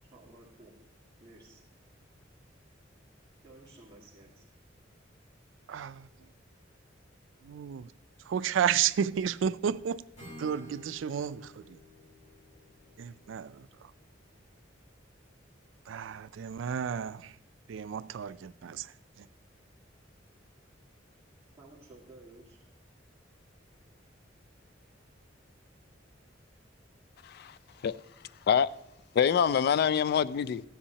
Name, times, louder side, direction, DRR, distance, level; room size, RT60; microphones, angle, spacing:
voice 1, 0.1-0.7 1.2-1.6 3.4-4.5 21.6-22.6, right 2 dB, 20° right, 2.1 m, -54 dB
voice 2, 5.7-6.1 7.4-7.9 8.3-10.0 10.4-11.8 13.0-13.9 15.9-17.3 17.7-18.9 19.2-19.3, right 8 dB, 85° right, 0.4 m, -32 dB
Acoustic guitar / Strum, 10.2-14.1, left 1 dB, 40° left, 4.0 m, -52 dB
voice 3, 29.2-30.6, left 8 dB, 55° left, 0.3 m, -25 dB
14.0 x 9.9 x 2.8 m
head